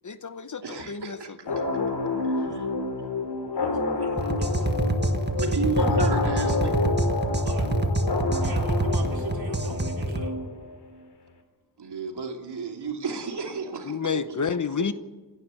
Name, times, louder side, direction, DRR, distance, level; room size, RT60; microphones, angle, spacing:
voice 1, 0.0-1.6 13.8-14.9, left 6 dB, 50° left, 12 dB, 1.1 m, -30 dB
voice 2, 0.6-1.3 2.2-2.6 5.4-6.9 11.8-14.0 14.4-14.5, right 4 dB, 90° right, 3 dB, 2.7 m, -32 dB
sound 1, 1.5-10.9, left 3 dB, 85° left, 3.0 m, -28 dB
voice 3, 3.5-4.7 7.4-7.7 8.3-10.4, right 3 dB, 65° right, 1 dB, 4.1 m, -41 dB
sound 2, 4.2-10.3, right 1 dB, 25° right, 1.7 m, -26 dB
27.0 x 12.0 x 8.5 m, 1.2 s
wide cardioid pair, 75°, 39 cm